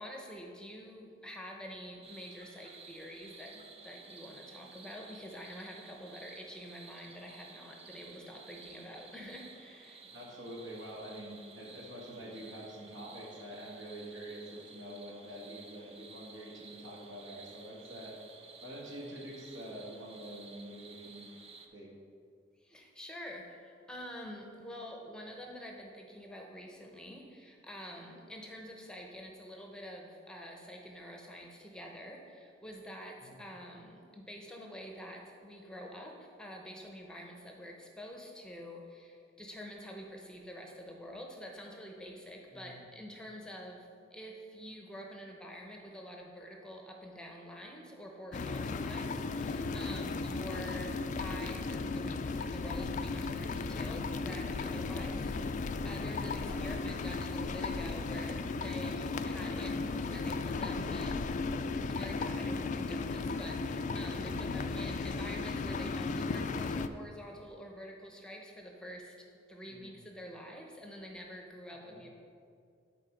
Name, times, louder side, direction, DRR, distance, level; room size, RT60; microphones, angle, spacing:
voice 1, 0.0-10.0 22.6-61.7 62.0-69.1 69.5-72.1, equal, 5° left, 1 dB, 0.7 m, -47 dB
sound 1, 2.0-21.7, right 4 dB, 30° right, 0.6 m, -54 dB
voice 2, 10.0-18.1 18.6-21.3 21.7-21.9 33.2-33.4 42.5-42.8 56.4-56.6 64.3-64.8 69.7-69.9 71.8-72.0, right 1 dB, 75° right, -3 dB, 1.9 m, -46 dB
sound 2, 48.3-66.9, left 3 dB, 40° left, 0.3 m, -35 dB
10.5 x 4.0 x 5.1 m, 2.3 s
head